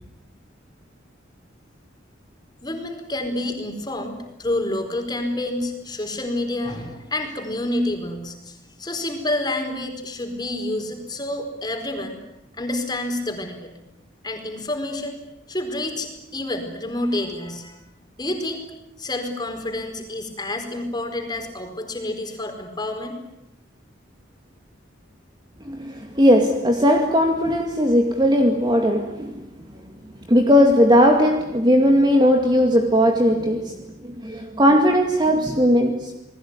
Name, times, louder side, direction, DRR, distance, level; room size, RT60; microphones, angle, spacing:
voice 1, 2.6-12.2 12.6-13.7 14.2-15.2 15.5-17.8 18.2-18.6 19.0-23.2, left 1 dB, 20° left, 5 dB, 4.8 m, -28 dB
voice 2, 25.7-29.4 30.3-33.8 34.0-36.2, equal, 20° right, 4 dB, 2.2 m, -18 dB
29.0 x 20.5 x 9.8 m, 0.89 s
head